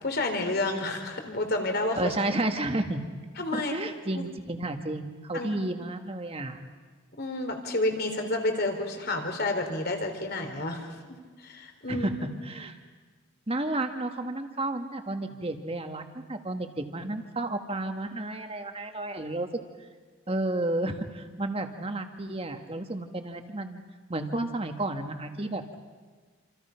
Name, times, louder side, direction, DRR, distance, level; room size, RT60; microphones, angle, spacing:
voice 1, 0.0-2.2 3.4-3.7 4.1-4.3 5.3-5.5 7.2-12.1, left 2 dB, 45° left, 5 dB, 3.5 m, -30 dB
voice 2, 2.0-3.0 3.5-6.6 11.9-12.1 12.5-12.8 13.5-19.6 20.3-23.8 24.1-25.8, right 2 dB, 25° right, 6 dB, 1.7 m, -32 dB
28.0 x 27.0 x 5.8 m, 1.5 s
head